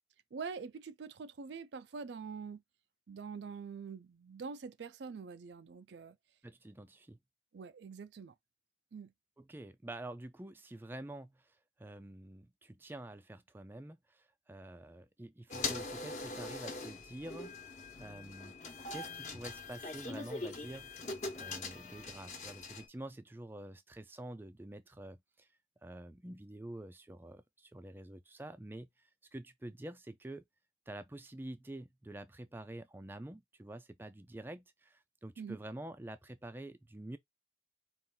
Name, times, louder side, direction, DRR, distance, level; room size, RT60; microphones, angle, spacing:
voice 1, 0.3-2.6 3.1-6.2 7.5-8.3 8.9-9.1 35.4-35.6, right 5 dB, 80° right, 0.4 m, -45 dB
voice 2, 6.4-7.2 9.4-18.6 18.9-21.0 21.4-25.5 25.8-30.4 30.9-37.2, right 1 dB, 10° right, 0.4 m, -48 dB
sound 1, 15.5-22.9, left 3 dB, 40° left, 1.0 m, -42 dB
4.1 x 2.5 x 3.7 m
head